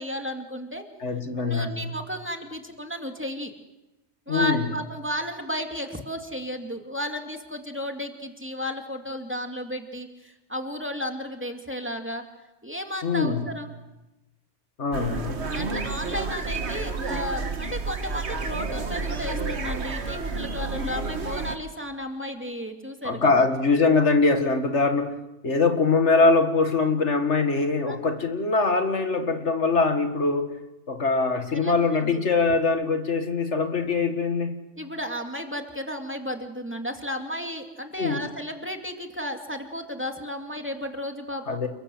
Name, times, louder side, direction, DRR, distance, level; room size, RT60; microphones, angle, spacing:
voice 1, 0.0-0.8 1.4-3.5 4.3-12.2 12.6-13.7 15.5-23.5 27.9-28.0 31.5-32.2 34.8-41.6, equal, 10° right, 4 dB, 2.4 m, -33 dB
voice 2, 1.0-1.9 4.3-4.6 13.0-13.5 14.8-15.4 23.0-25.1 25.4-30.5 30.9-34.6 38.0-38.2 41.5-41.7, left 4 dB, 75° left, 7 dB, 2.2 m, -23 dB
sound 1, 14.9-21.6, right 3 dB, 70° right, 1.9 m, -30 dB
29.5 x 22.0 x 7.9 m, 0.99 s
omnidirectional pair, 1.2 m